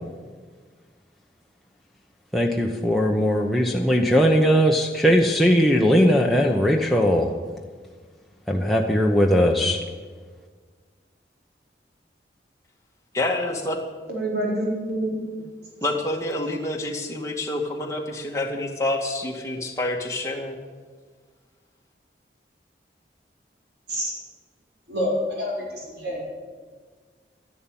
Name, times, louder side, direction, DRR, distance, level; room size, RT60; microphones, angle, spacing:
voice 1, 2.3-7.3 8.5-9.8, equal, ahead, -1 dB, 0.8 m, -19 dB
voice 2, 13.1-13.8 15.8-20.6, left 1 dB, 15° left, 0 dB, 1.9 m, -27 dB
voice 3, 14.1-15.2 23.9-24.1 24.9-26.3, equal, 75° right, -3 dB, 5.0 m, -27 dB
13.0 x 11.0 x 9.0 m, 1.5 s
head